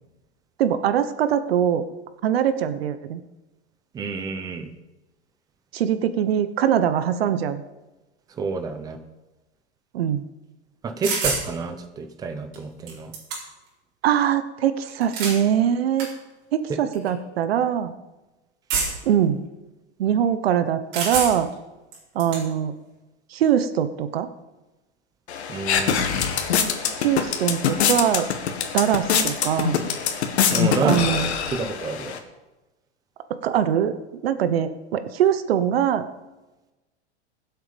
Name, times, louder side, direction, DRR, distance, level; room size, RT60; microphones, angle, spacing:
voice 1, 0.6-1.8 2.2-3.2 5.7-7.6 9.9-10.2 14.0-16.1 16.5-17.9 19.1-19.4 20.0-21.5 22.1-22.7 23.3-24.3 27.0-28.3 28.7-29.8 30.8-31.3 33.4-34.0 34.2-36.1, right 9 dB, 60° right, 11 dB, 1.0 m, -22 dB
voice 2, 3.9-4.7 8.4-9.0 10.8-13.1 25.5-26.3 30.5-32.2, right 4 dB, 10° right, 8 dB, 0.8 m, -29 dB
sound 1, 11.0-11.5 12.5-12.6 12.9-13.7 14.9-15.4 16.0-16.1 16.9-17.1 18.7-19.1 20.9-21.5 21.9-22.4, right 4 dB, 35° right, 4.5 m, -27 dB
sound 2, 25.3-32.2, left 7 dB, 70° left, 2.0 m, -24 dB
21.5 x 7.9 x 5.2 m, 1.1 s
supercardioid pair, 165°, 34 cm